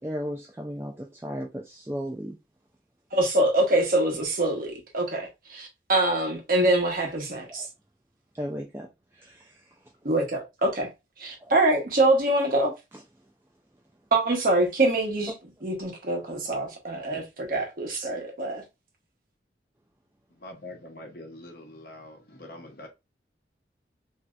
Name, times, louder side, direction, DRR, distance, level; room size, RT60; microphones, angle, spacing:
voice 1, 0.0-2.4 7.5-7.7 8.3-9.8 11.4-11.5, equal, 15° right, 0.3 m, -35 dB
voice 2, 3.1-7.7 10.0-10.9 11.2-12.7 14.1-15.3 15.6-18.6, right 2 dB, 50° right, 1.0 m, -24 dB
voice 3, 20.4-22.9, left 1 dB, 55° left, 0.9 m, -44 dB
3.2 x 2.7 x 2.3 m
head